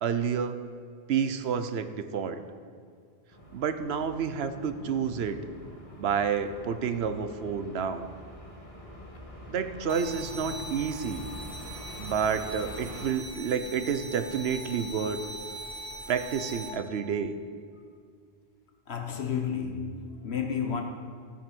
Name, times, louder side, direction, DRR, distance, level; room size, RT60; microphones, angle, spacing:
voice 1, 0.0-0.6 1.1-2.4 3.5-5.4 6.0-8.1 9.5-11.3 12.0-15.2 16.1-17.3, right 7 dB, 80° right, 1.0 m, -29 dB
sound 1, 3.3-13.1, left 1 dB, 35° left, 2.0 m, -45 dB
sound 2, 9.9-16.7, right 1 dB, 25° right, 2.1 m, -41 dB
voice 2, 18.9-20.8, left 7 dB, 85° left, 1.4 m, -31 dB
14.5 x 9.0 x 5.3 m
omnidirectional pair, 1.0 m